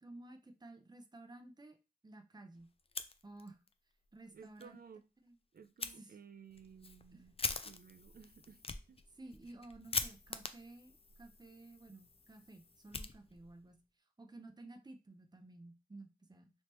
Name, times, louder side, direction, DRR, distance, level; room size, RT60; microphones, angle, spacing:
voice 1, 0.0-1.8 2.0-2.7 3.2-3.6 4.1-4.8 5.2-5.4 5.9-6.2 7.1-7.2 9.2-13.8 14.2-16.5, right 2 dB, 25° right, 0.5 m, -54 dB
Fire, 2.8-3.7 4.1-4.2 4.6-4.7 5.8-5.9 6.5-13.7, left 4 dB, 40° left, 0.3 m, -43 dB
voice 2, 4.3-5.0 5.5-7.3 7.6-8.6 8.9-9.0, right 6 dB, 80° right, 0.4 m, -56 dB
3.2 x 3.0 x 2.9 m
wide cardioid pair, 60°, 15 cm